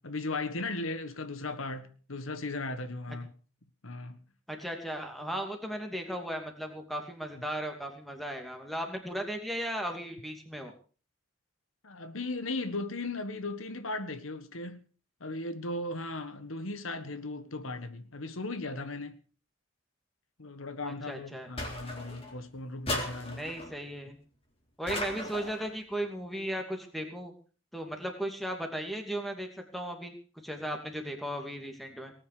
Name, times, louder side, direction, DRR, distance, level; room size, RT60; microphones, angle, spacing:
voice 1, 0.0-3.3 3.8-4.2 11.8-14.8 15.2-19.2 20.4-23.5, left 2 dB, 80° left, 1.5 m, -37 dB
voice 2, 4.5-10.7 20.8-21.5 23.4-24.2 24.8-27.3 27.7-30.1 30.4-32.1, equal, ahead, 2.7 m, -36 dB
sound 1, 21.6-22.4 22.9-23.7 24.9-25.7, left 1 dB, 30° left, 3.9 m, -36 dB
19.0 x 9.6 x 6.7 m
head